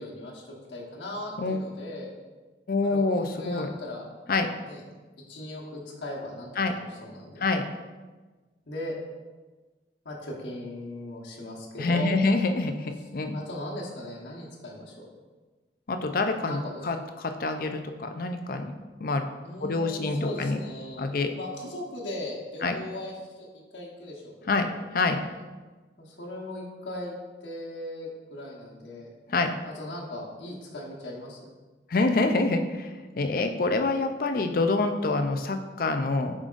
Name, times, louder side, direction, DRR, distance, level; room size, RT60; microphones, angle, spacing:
voice 1, 0.0-2.1 2.8-4.1 4.6-4.8 5.3-7.4 8.7-9.0 10.0-12.1 13.3-15.1 16.5-16.9 19.4-24.7 26.0-27.1 27.4-29.1 29.6-31.5, left 1 dB, 85° left, -4 dB, 1.2 m, -38 dB
voice 2, 2.7-3.7 4.3-4.5 6.6-6.7 7.4-7.6 11.8-13.4 15.9-16.6 16.8-18.7 19.0-19.2 19.6-20.6 21.0-21.3 22.6-22.7 24.5-24.7 24.9-25.2 29.3-29.5 31.9-32.9 33.2-36.3, left 3 dB, 50° left, 6 dB, 0.5 m, -26 dB
7.6 x 5.0 x 2.5 m, 1.3 s
head